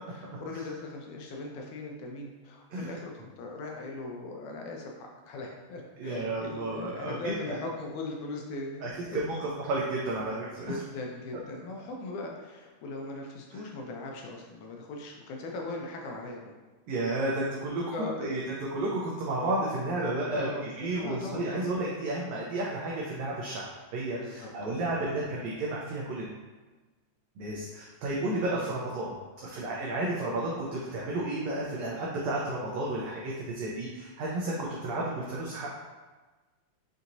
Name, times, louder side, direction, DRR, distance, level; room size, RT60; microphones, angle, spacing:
voice 1, 0.1-9.2 10.7-16.5 17.9-18.3 20.3-20.7 21.0-21.9 24.2-25.3 27.5-27.7, left 2 dB, 80° left, 0 dB, 1.9 m, -39 dB
voice 2, 6.0-7.6 8.8-10.8 13.5-13.6 16.9-17.8 18.2-20.5 20.8-26.4 27.4-29.2 29.4-34.6 34.8-35.7, right 2 dB, 80° right, -4 dB, 1.5 m, -32 dB
5.8 x 2.8 x 2.6 m, 1.3 s
omnidirectional pair, 3.6 m